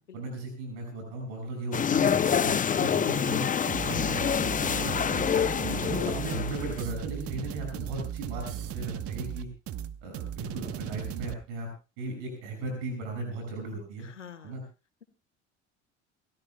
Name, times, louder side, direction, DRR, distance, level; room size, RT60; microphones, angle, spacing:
voice 1, 0.1-3.5 3.8-4.3 4.7-4.9 5.6-9.5 10.0-14.1 14.4-14.6, right 2 dB, 70° right, 3 dB, 6.4 m, -37 dB
sound 1, 1.7-6.8, left 7 dB, 20° left, 0.7 m, -27 dB
sound 2, 3.7-11.3, right 10 dB, 40° right, 1.0 m, -36 dB
voice 2, 4.4-5.7 14.0-14.5, left 8 dB, 90° left, 11 dB, 1.6 m, -43 dB
30.0 x 15.0 x 2.3 m, 0.30 s
hypercardioid pair, 65°, 35 cm